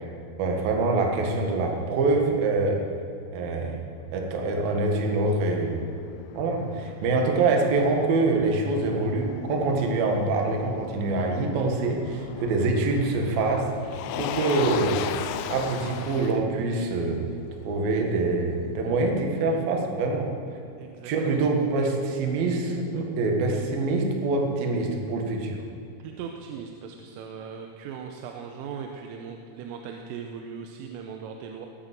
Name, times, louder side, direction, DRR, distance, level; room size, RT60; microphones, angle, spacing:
voice 1, 0.4-2.8 3.3-3.8 4.1-5.8 6.3-13.7 14.2-15.0 15.5-17.2 17.6-20.3 21.0-25.6, right 3 dB, 60° right, 2 dB, 3.0 m, -25 dB
Motor vehicle (road), 3.9-18.9, left 9 dB, 90° left, 2.6 m, -38 dB
voice 2, 20.8-21.4 26.0-31.7, right 6 dB, 90° right, 3 dB, 3.5 m, -39 dB
18.5 x 9.1 x 7.6 m, 2.5 s
omnidirectional pair, 5.8 m